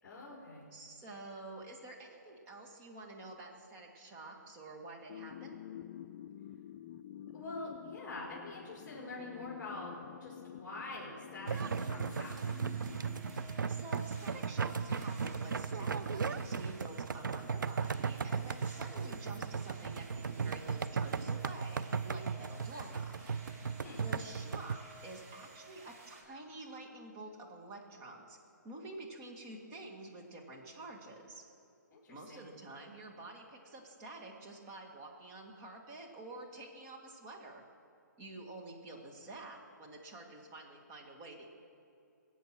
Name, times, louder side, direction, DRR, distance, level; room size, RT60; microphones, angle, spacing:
voice 1, 0.0-0.7 7.3-9.9 10.2-12.7 23.8-24.0 31.9-32.5, left 2 dB, 15° left, -5 dB, 4.8 m, -45 dB
voice 2, 0.7-5.6 13.7-23.1 24.0-28.4 28.6-31.4 32.1-37.6 38.2-41.5, right 2 dB, 25° right, 0 dB, 2.2 m, -49 dB
sound 1, 5.1-14.1, left 11 dB, 30° left, 0.4 m, -50 dB
sound 2, 11.5-26.2, right 2 dB, 45° right, 3.2 m, -56 dB
sound 3, 11.5-24.8, right 5 dB, 85° right, 0.6 m, -36 dB
22.0 x 8.5 x 6.2 m, 2.6 s
hypercardioid pair, 145°, 10 cm